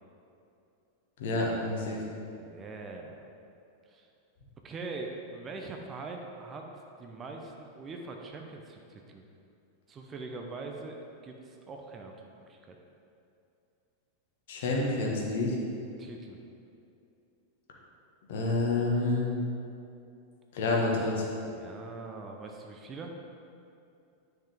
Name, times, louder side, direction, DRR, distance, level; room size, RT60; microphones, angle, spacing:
voice 1, 1.2-2.0 14.5-15.6 18.3-19.4 20.5-21.3, left 2 dB, 55° left, -2 dB, 1.5 m, -28 dB
voice 2, 2.3-3.3 3.9-4.1 4.6-6.7 7.0-9.2 9.9-11.0 11.2-12.1 12.5-12.8 16.0-16.4 21.4-23.1, right 3 dB, 25° right, 2 dB, 0.8 m, -42 dB
10.0 x 5.8 x 3.6 m, 2.6 s
figure-of-eight pair, 90°, 0 cm